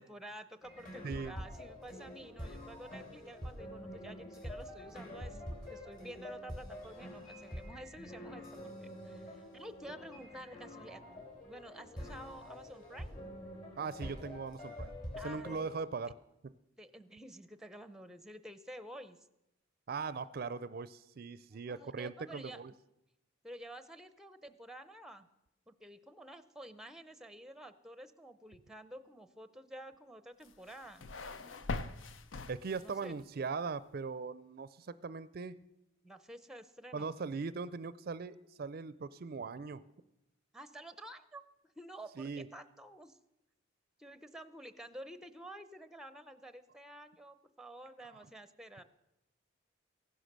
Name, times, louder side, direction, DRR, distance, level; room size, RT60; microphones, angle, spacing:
voice 1, 0.0-13.2 15.2-15.7 16.8-19.2 21.7-22.6 23.4-25.3 25.7-31.1 32.8-33.2 36.0-37.1 40.5-41.4 41.8-43.2 44.0-48.8, right 1 dB, 5° right, 13 dB, 0.6 m, -50 dB
sound 1, 0.6-15.8, equal, 45° left, 4.2 m, -46 dB
voice 2, 1.0-1.3 13.8-14.9 15.2-16.1 19.9-22.7 32.5-35.6 36.9-39.8 42.2-42.5, right 4 dB, 50° right, 17 dB, 0.4 m, -40 dB
sound 2, 30.4-33.1, left 3 dB, 85° left, 0.7 m, -42 dB
15.5 x 11.5 x 6.6 m, 0.90 s
head